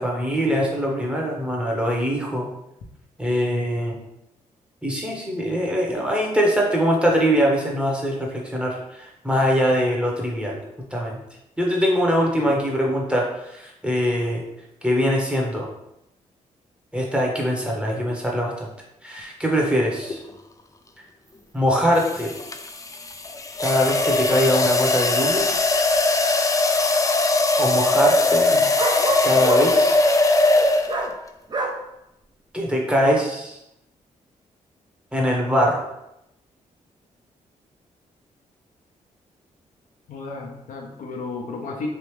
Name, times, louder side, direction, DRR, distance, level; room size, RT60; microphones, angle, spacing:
voice 1, 0.0-2.5 3.2-4.0 4.8-10.6 10.9-11.2 11.6-14.4 14.8-15.7 16.9-18.7 19.0-20.2 21.5-22.3 23.6-25.5 27.6-28.5 29.2-30.0 32.5-33.6 35.1-35.9, equal, 5° right, -2 dB, 0.9 m, -22 dB
sound 1, 20.0-20.3 22.0-31.2, left 2 dB, 25° left, 0.4 m, -20 dB
sound 2, 21.3-21.4 21.9-22.0 22.2-22.3 23.3-23.4 24.2-24.3 25.0-26.0 28.8-29.7 30.9-31.1 31.5-31.8, right 3 dB, 35° right, 0.6 m, -27 dB
voice 2, 40.1-41.9, left 3 dB, 70° left, 0 dB, 0.7 m, -32 dB
3.3 x 2.4 x 3.2 m, 0.84 s
cardioid pair, 60°, 14 cm